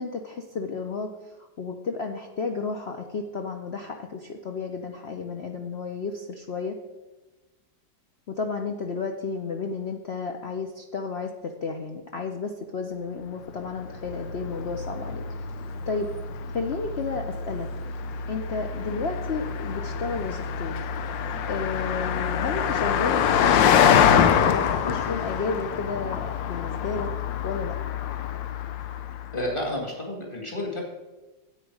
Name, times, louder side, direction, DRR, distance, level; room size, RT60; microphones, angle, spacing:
voice 1, 0.0-6.8 8.3-15.2 15.9-16.1 16.5-17.7 18.3-20.8 21.5-27.1 27.4-27.8, left 4 dB, 65° left, 4 dB, 0.6 m, -32 dB
Car passing by, 13.6-29.3, left 8 dB, 85° left, 1.4 m, -26 dB
voice 2, 29.3-30.8, left 1 dB, 15° left, -1 dB, 2.1 m, -30 dB
9.9 x 8.5 x 4.8 m, 1.1 s
omnidirectional pair, 1.9 m